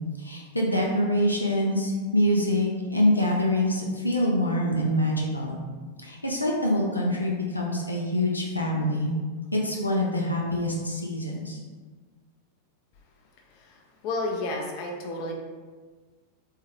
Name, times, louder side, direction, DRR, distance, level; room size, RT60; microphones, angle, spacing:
voice 1, 0.2-5.6 6.0-9.1 9.5-11.6, left 1 dB, 85° left, -2 dB, 0.5 m, -25 dB
voice 2, 14.0-15.3, left 2 dB, 45° left, 0 dB, 0.6 m, -31 dB
3.6 x 3.2 x 3.2 m, 1.4 s
figure-of-eight pair, 90°, 0 cm